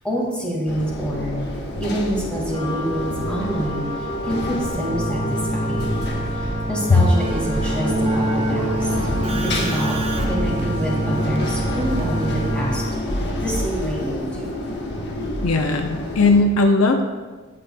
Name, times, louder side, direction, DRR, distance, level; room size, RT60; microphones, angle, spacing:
voice 1, 0.0-1.4 1.8-6.0 6.3-8.9 9.2-10.0 10.3-12.9 13.4-14.5, equal, 5° left, -3 dB, 1.7 m, -27 dB
sound 1, 0.7-16.4, left 1 dB, 55° left, 1.0 m, -28 dB
Wind instrument woodwind instrument, 2.5-13.0, equal, 25° left, 1.4 m, -34 dB
Keyboard (musical), 4.8-13.2, right 1 dB, 30° right, 0.7 m, -26 dB
voice 2, 15.4-17.0, left 3 dB, 85° left, 4 dB, 0.7 m, -17 dB
16.0 x 5.4 x 2.2 m, 1.3 s
head